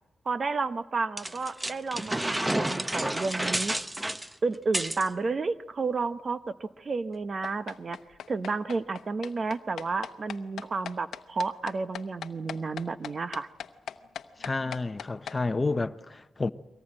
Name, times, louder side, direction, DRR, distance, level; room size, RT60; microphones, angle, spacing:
voice 1, 0.3-3.7 4.4-8.0 8.3-13.5, right 4 dB, 45° right, 0.9 m, -31 dB
sound 1, 1.2-5.1, right 1 dB, 15° right, 0.9 m, -30 dB
sound 2, 7.4-15.4, left 9 dB, 85° left, 0.8 m, -39 dB
voice 2, 14.4-16.5, left 3 dB, 30° left, 0.8 m, -30 dB
23.5 x 18.5 x 8.8 m
cardioid pair, 75°, 0 cm